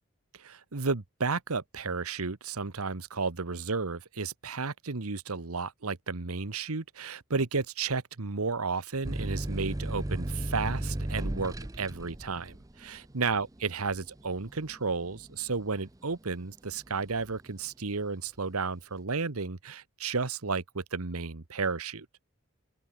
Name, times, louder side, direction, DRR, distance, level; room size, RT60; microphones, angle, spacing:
voice 1, 0.4-22.1, right 4 dB, 90° right, 1.3 m, -33 dB
sound 1, 9.0-16.3 16.8-17.5, right 1 dB, 15° right, 0.6 m, -35 dB
head